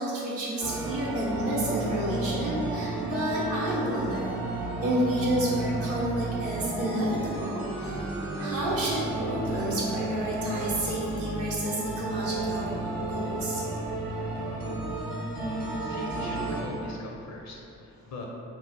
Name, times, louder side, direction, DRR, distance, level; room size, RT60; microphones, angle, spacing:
voice 1, 0.0-8.1 8.4-12.8 13.1-13.6 15.6-15.7, right 1 dB, 40° right, -6 dB, 0.8 m, -30 dB
sound 1, 0.6-16.6, right 2 dB, 85° right, 1.0 m, -32 dB
voice 2, 15.0-18.3, left 2 dB, 45° left, -1 dB, 0.5 m, -42 dB
3.0 x 2.0 x 3.8 m, 2.6 s
hypercardioid pair, 40°, 39 cm